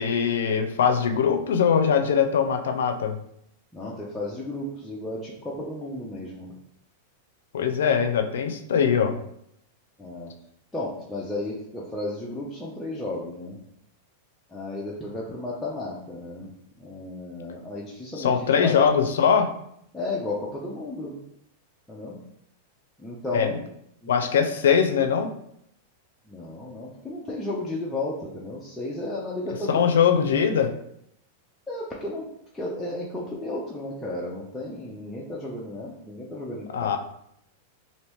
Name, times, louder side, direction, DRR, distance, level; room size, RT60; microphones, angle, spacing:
voice 1, 0.0-3.2 7.5-9.2 18.2-19.6 23.3-23.6 24.1-25.3 29.7-30.7 36.7-37.0, left 7 dB, 90° left, 7 dB, 0.4 m, -22 dB
voice 2, 3.7-6.5 10.0-10.3 10.7-13.6 14.5-16.5 16.8-18.7 19.9-21.1 21.9-22.2 23.0-23.5 24.0-24.1 26.3-29.8 31.7-32.3 32.5-36.9, left 2 dB, 5° left, -6 dB, 0.4 m, -33 dB
2.9 x 2.6 x 3.3 m, 0.74 s
supercardioid pair, 155°, 0 cm